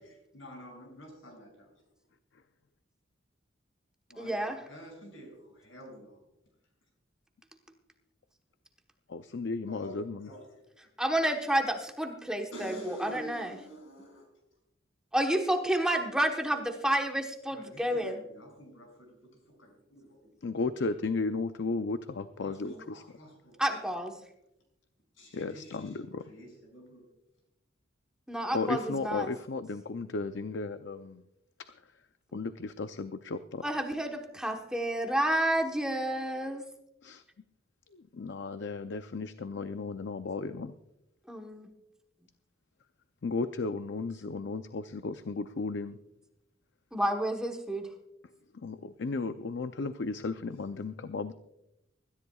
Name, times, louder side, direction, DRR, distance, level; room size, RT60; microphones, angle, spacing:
voice 1, 0.0-1.5 4.1-6.2 9.7-10.4 12.5-14.3 17.5-20.2 22.3-24.0 25.1-27.1, equal, 85° left, 1 dB, 6.7 m, -48 dB
voice 2, 4.2-4.6 11.0-13.6 15.1-18.2 23.6-24.1 28.3-29.3 33.6-36.6 41.3-41.7 46.9-47.9, right 1 dB, 5° right, 2 dB, 1.1 m, -30 dB
voice 3, 9.1-10.3 20.4-23.0 25.3-26.2 28.5-31.2 31.6-31.7 32.3-33.6 37.0-37.2 37.9-40.7 43.2-46.0 48.6-51.3, left 3 dB, 65° left, 10 dB, 0.5 m, -34 dB
24.5 x 13.5 x 2.4 m, 0.87 s
head